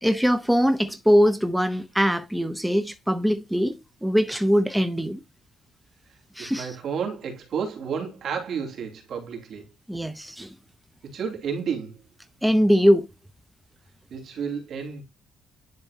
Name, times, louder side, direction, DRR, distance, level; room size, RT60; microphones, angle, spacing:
voice 1, 0.0-5.2 6.4-6.8 9.9-10.5 12.4-13.1, equal, 5° right, 0.7 m, -22 dB
voice 2, 6.4-9.6 11.1-12.0 14.1-15.0, right 6 dB, 65° right, 2.8 m, -31 dB
10.5 x 4.0 x 2.8 m
cardioid pair, 90°, 0 cm